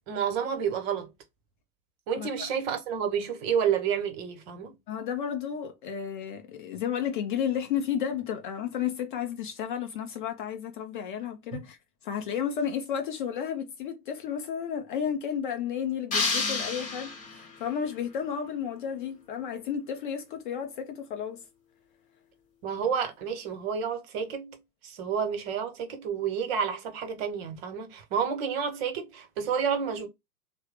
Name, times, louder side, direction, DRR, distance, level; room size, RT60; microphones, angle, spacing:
voice 1, 0.1-1.1 2.1-4.8 22.6-30.1, right 7 dB, 40° right, 0.9 m, -30 dB
voice 2, 4.9-11.8 12.0-21.4, left 8 dB, 35° left, 0.5 m, -32 dB
sound 1, 16.1-17.6, left 4 dB, 15° left, 1.0 m, -30 dB
3.1 x 2.0 x 3.2 m
figure-of-eight pair, 95°, 49 cm